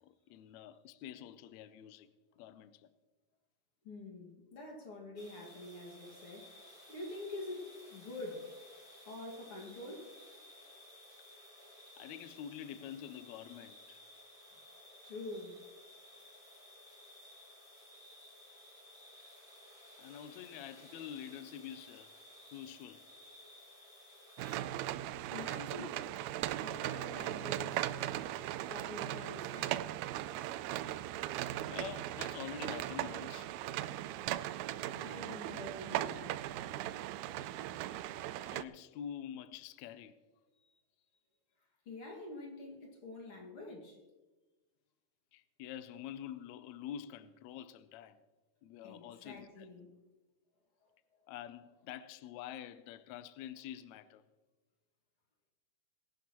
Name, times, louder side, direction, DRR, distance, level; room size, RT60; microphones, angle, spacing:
voice 1, 0.0-2.1 2.4-2.9 12.0-14.0 20.0-22.1 22.5-23.1 31.7-33.5 38.4-40.2 45.3-48.2 48.6-49.7 51.3-54.2, left 10 dB, 80° left, 1.7 m, -47 dB
voice 2, 3.8-8.5 9.1-10.1 15.0-15.6 25.3-26.2 26.6-28.0 28.7-29.8 34.9-36.5 41.9-44.0 48.8-50.0 50.8-50.9, left 2 dB, 50° left, 2.7 m, -46 dB
sound 1, 5.2-24.6, left 1 dB, 10° left, 3.1 m, -56 dB
sound 2, 24.4-38.6, right 14 dB, 80° right, 1.8 m, -38 dB
21.0 x 11.5 x 3.0 m
omnidirectional pair, 3.6 m